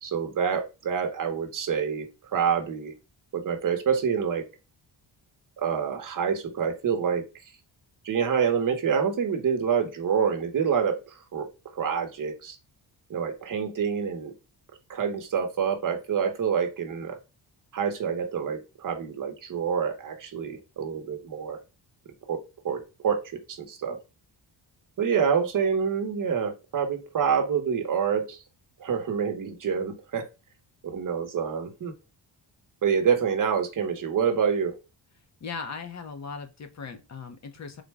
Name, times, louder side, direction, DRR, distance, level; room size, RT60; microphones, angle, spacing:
voice 1, 0.0-2.9 3.3-4.4 5.6-7.2 8.0-11.5 11.7-12.6 13.1-14.3 14.9-17.2 17.7-21.6 22.3-24.0 25.0-28.4 28.8-30.2 30.8-31.9 32.8-34.7, right 7 dB, 45° right, 4 dB, 0.9 m, -27 dB
voice 2, 35.4-37.8, left 5 dB, 40° left, 8 dB, 0.6 m, -38 dB
3.9 x 2.2 x 4.5 m, 0.28 s
wide cardioid pair, 180°, 44 cm